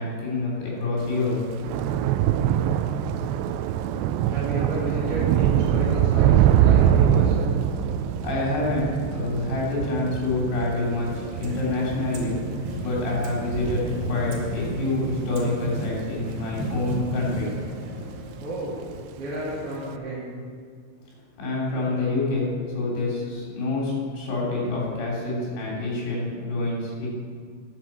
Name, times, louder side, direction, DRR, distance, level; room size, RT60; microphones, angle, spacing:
voice 1, 0.0-1.4 8.2-12.4 12.8-17.5 21.4-27.1, left 2 dB, 60° left, -4 dB, 5.3 m, -27 dB
Thunder / Rain, 1.1-17.7 18.0-18.5 18.7-18.9, right 10 dB, 85° right, 2.5 m, -24 dB
voice 2, 4.3-7.5 18.4-18.8 19.2-20.3, right 1 dB, 35° right, -9 dB, 3.0 m, -32 dB
sound 1, 10.7-19.0, equal, 60° right, 3.7 m, -35 dB
10.5 x 8.4 x 7.5 m, 2.1 s
omnidirectional pair, 5.5 m